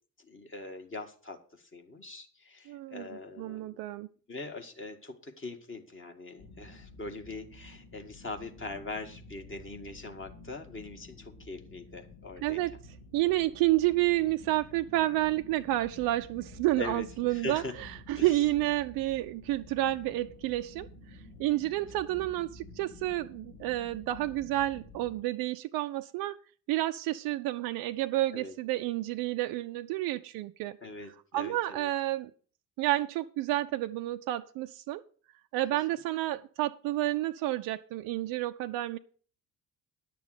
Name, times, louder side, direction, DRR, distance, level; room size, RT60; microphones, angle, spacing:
voice 1, 0.2-3.8 4.3-12.6 16.8-17.7 18.2-18.4 21.8-21.9 28.3-28.5 30.8-31.9 35.9-36.0, left 2 dB, 25° left, 4 dB, 1.9 m, -42 dB
voice 2, 2.7-4.1 12.4-12.7 13.1-26.4 26.7-30.8 31.3-32.3 32.8-35.0 35.5-39.0, right 16 dB, 50° right, 8 dB, 0.6 m, -30 dB
sound 1, 6.4-25.2, left 2 dB, 65° left, 2.0 m, -51 dB
10.5 x 6.8 x 6.6 m, 0.41 s
figure-of-eight pair, 55°, 47 cm